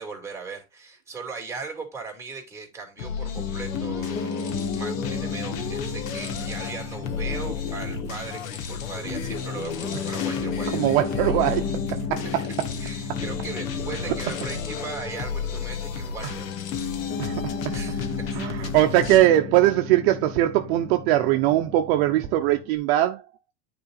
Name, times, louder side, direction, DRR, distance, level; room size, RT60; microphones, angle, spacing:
voice 1, 0.0-10.7 12.4-12.5 12.8-16.6 16.9-17.4 17.7-18.4 19.2-19.3, right 4 dB, 5° right, 2.6 m, -38 dB
sound 1, 3.0-19.2, left 5 dB, 80° left, 1.6 m, -33 dB
Piano, 3.4-22.8, left 6 dB, 20° left, 0.9 m, -34 dB
voice 2, 10.7-12.4 17.2-17.7 18.3-23.2, right 14 dB, 50° right, 0.8 m, -21 dB
9.5 x 4.0 x 4.1 m
supercardioid pair, 155°, 39 cm